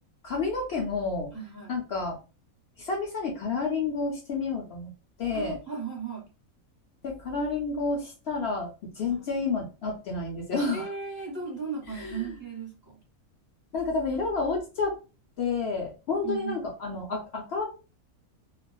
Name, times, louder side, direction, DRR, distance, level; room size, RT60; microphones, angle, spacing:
voice 1, 0.2-1.3 1.7-2.2 2.8-4.9 5.2-5.6 7.0-8.7 9.0-10.9 11.9-12.3 13.7-15.0 15.4-17.9, left 4 dB, 60° left, 0 dB, 0.7 m, -30 dB
voice 2, 1.3-1.7 5.3-6.2 9.1-9.3 10.7-12.7 16.2-16.6, right 5 dB, 15° left, -3 dB, 0.9 m, -36 dB
2.4 x 2.2 x 2.3 m, 0.31 s
omnidirectional pair, 1.5 m